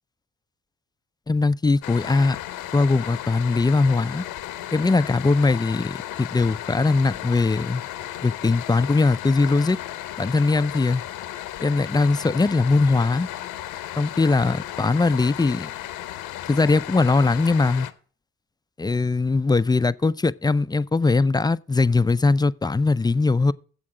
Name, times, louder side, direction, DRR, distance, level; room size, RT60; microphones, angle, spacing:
voice 1, 1.3-2.4 2.7-4.2 4.7-7.8 8.2-9.8 10.2-11.0 11.6-13.3 14.0-15.7 16.5-17.9 18.8-23.5, left 3 dB, 10° left, 0.4 m, -20 dB
sound 1, 1.8-17.9, left 13 dB, 75° left, 0.9 m, -35 dB
7.6 x 7.6 x 7.7 m
hypercardioid pair, 50°, 36 cm